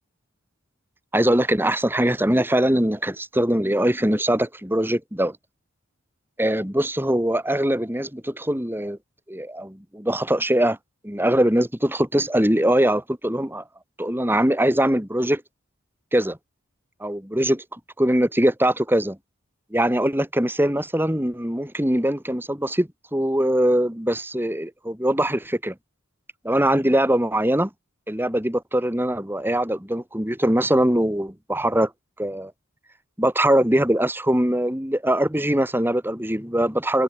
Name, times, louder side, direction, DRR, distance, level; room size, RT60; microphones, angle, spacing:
voice 1, 1.1-5.4 6.4-9.0 9.3-10.8 11.0-13.6 14.0-15.4 16.1-16.4 17.0-17.6 18.0-19.2 19.7-25.7 26.4-27.7 28.1-31.9 32.2-32.5 33.2-37.0, right 1 dB, 10° right, 2.9 m, -22 dB
head